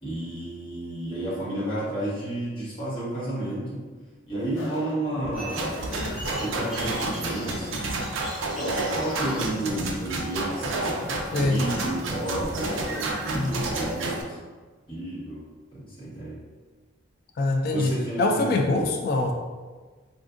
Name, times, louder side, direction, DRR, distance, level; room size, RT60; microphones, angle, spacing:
voice 1, 0.0-3.8 4.3-5.8 6.3-8.0 8.4-11.0 11.3-14.4 14.9-15.4 15.7-16.4 17.7-18.9, right 1 dB, 25° left, -11 dB, 1.3 m, -32 dB
sound 1, 4.6-6.3 6.9-7.9 8.4-9.7 10.3-11.6 12.2-13.0, left 1 dB, 70° left, 0.7 m, -39 dB
sound 2, 5.3-9.4, equal, 5° right, 0.9 m, -40 dB
sound 3, 5.5-14.2, right 2 dB, 70° right, 0.4 m, -30 dB
voice 2, 13.3-13.7 17.4-17.9 18.2-19.3, left 2 dB, 45° left, 2 dB, 0.3 m, -24 dB
3.7 x 2.5 x 2.4 m, 1.4 s
head